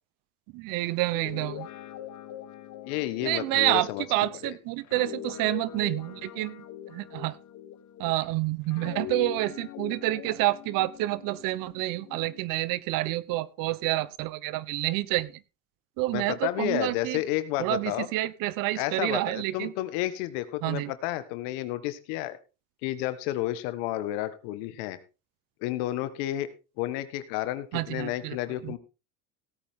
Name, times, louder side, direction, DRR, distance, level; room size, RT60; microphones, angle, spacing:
voice 1, 0.5-1.7 3.2-7.4 8.0-15.3 16.0-17.2 17.6-19.7 20.6-20.9 27.7-28.4 28.6-28.7, right 18 dB, 65° right, 20 dB, 1.0 m, -28 dB
Guitar, 1.1-8.3 8.7-12.4, left 11 dB, 55° left, 1.4 m, -42 dB
voice 2, 2.9-4.0 4.4-4.6 16.1-18.1 18.7-22.4 22.8-25.0 25.6-26.5 26.8-28.8, left 14 dB, 80° left, 12 dB, 1.5 m, -31 dB
17.0 x 8.7 x 3.7 m, 0.31 s
supercardioid pair, 100°, 36 cm